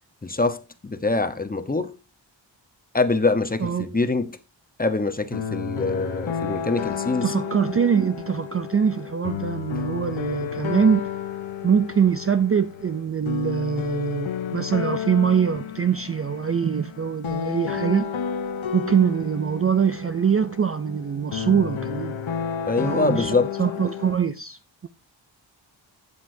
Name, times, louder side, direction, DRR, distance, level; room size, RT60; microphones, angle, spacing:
voice 1, 0.2-2.0 2.9-4.4 4.8-7.3 22.7-23.5, left 3 dB, 20° left, 0.8 m, -24 dB
voice 2, 3.6-4.0 7.2-11.0 11.6-18.1 18.7-22.2 22.8-24.9, right 7 dB, 30° right, 0.4 m, -23 dB
sound 1, 5.3-24.2, left 7 dB, 90° left, 1.0 m, -31 dB
12.0 x 8.3 x 2.7 m
wide cardioid pair, 145°, 46 cm